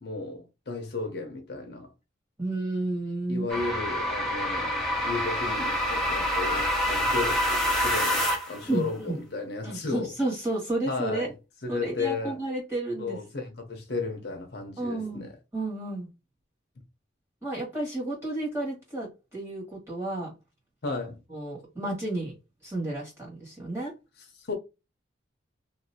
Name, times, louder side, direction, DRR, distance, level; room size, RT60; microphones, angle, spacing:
voice 1, 0.0-1.9 3.3-10.1 10.9-11.3 11.6-12.4 13.0-15.3 20.8-21.2 24.4-24.5, left 3 dB, 60° left, 0.7 m, -34 dB
voice 2, 2.4-3.5 8.6-9.2 9.6-11.3 11.7-13.2 14.8-15.2 15.5-16.1 17.4-20.3 21.3-22.3 22.6-23.9, right 2 dB, 15° right, 1.7 m, -31 dB
sound 1, 3.5-8.6, equal, ahead, 0.7 m, -27 dB
2.9 x 2.6 x 2.7 m
head